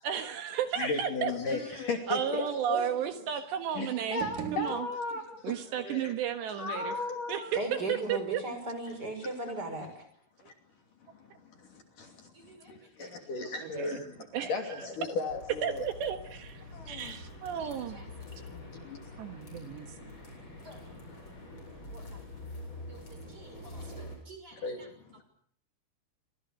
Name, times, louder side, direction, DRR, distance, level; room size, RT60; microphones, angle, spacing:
voice 1, 0.0-1.6 2.1-4.2 4.5-4.9 5.4-7.0 7.3-7.6 7.9-8.4 13.6-14.0 14.3-14.8 15.6-18.0 19.2-19.9, right 9 dB, 70° right, 7 dB, 3.5 m, -33 dB
voice 2, 0.8-2.9 3.7-6.1 6.5-7.6 8.9-9.0 9.2-9.6 10.5-10.6 11.0-15.8 16.7-17.2 18.4-22.2 24.5-25.2, left 3 dB, 50° left, 4 dB, 4.0 m, -37 dB
sound 1, 4.0-5.5, right 8 dB, 55° right, 2.5 m, -41 dB
voice 3, 7.5-10.0 12.3-13.1 17.6-18.0 20.6-20.8 21.9-22.2 22.9-23.0 23.3-24.9, right 2 dB, 20° right, 8 dB, 6.2 m, -39 dB
sound 2, 15.3-24.2, left 1 dB, 25° left, 8.7 m, -46 dB
28.5 x 26.0 x 6.5 m, 0.62 s
omnidirectional pair, 5.4 m